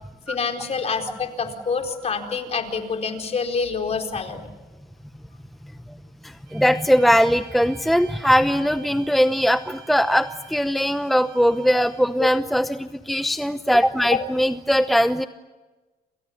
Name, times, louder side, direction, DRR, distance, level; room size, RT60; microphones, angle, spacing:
voice 1, 0.3-4.4 12.2-12.3 14.1-14.2, left 5 dB, 40° left, 4 dB, 4.4 m, -26 dB
voice 2, 6.2-15.3, equal, ahead, 10 dB, 0.8 m, -20 dB
sound 1, 6.5-12.2, right 10 dB, 75° right, 7.7 m, -47 dB
28.5 x 28.5 x 7.3 m, 1.2 s
cardioid pair, 110°, 17 cm